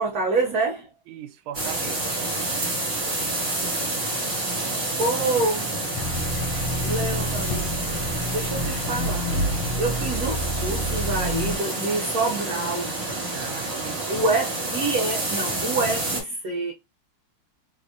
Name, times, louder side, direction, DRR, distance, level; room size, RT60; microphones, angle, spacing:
voice 1, 0.0-0.9 5.0-5.6 6.8-7.8 8.3-9.3 9.8-12.9 14.1-16.7, right 3 dB, 60° right, 1.0 m, -26 dB
voice 2, 1.1-2.2 13.3-14.3, right 10 dB, 80° right, 1.4 m, -39 dB
sound 1, 1.5-16.2, right 2 dB, 30° right, 1.7 m, -29 dB
sound 2, 5.9-11.5, equal, 80° left, 1.6 m, -28 dB
3.4 x 3.3 x 2.6 m
omnidirectional pair, 2.3 m